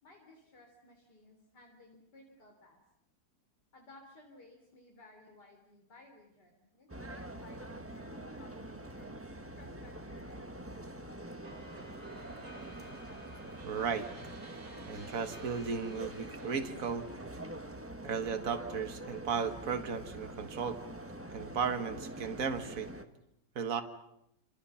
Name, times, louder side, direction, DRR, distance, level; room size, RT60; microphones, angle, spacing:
voice 1, 0.0-2.8 3.7-10.7, left 1 dB, 70° left, 2 dB, 4.0 m, -58 dB
sound 1, 6.9-23.0, right 1 dB, 10° right, 1.2 m, -45 dB
sound 2, 11.4-17.7, right 3 dB, 80° right, 3.3 m, -53 dB
voice 2, 13.6-14.1 14.8-17.1 18.0-20.8 21.3-22.9 23.6-23.8, right 6 dB, 50° right, 7 dB, 2.0 m, -35 dB
29.5 x 27.5 x 5.8 m, 0.80 s
omnidirectional pair, 1.9 m